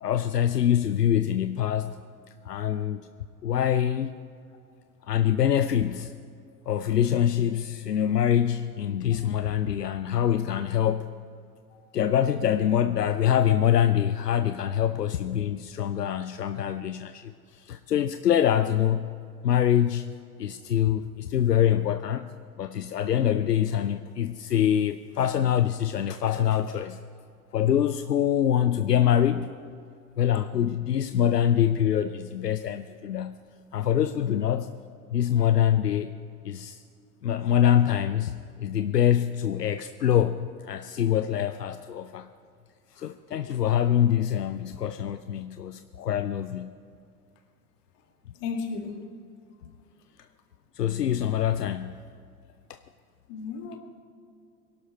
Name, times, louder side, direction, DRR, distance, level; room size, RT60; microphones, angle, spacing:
voice 1, 0.0-2.0 2.5-3.0 3.4-4.2 5.1-6.1 6.7-11.1 11.9-19.1 19.4-20.1 20.4-22.3 22.6-27.0 27.5-29.5 30.2-33.4 33.7-34.7 35.1-36.1 36.4-36.8 37.2-42.3 43.0-46.8 50.8-52.0, left 10 dB, 85° left, 11 dB, 0.6 m, -25 dB
voice 2, 48.4-49.0 53.3-53.8, left 5 dB, 50° left, 4 dB, 2.0 m, -34 dB
23.0 x 12.0 x 3.1 m, 2.3 s
figure-of-eight pair, 75°, 47 cm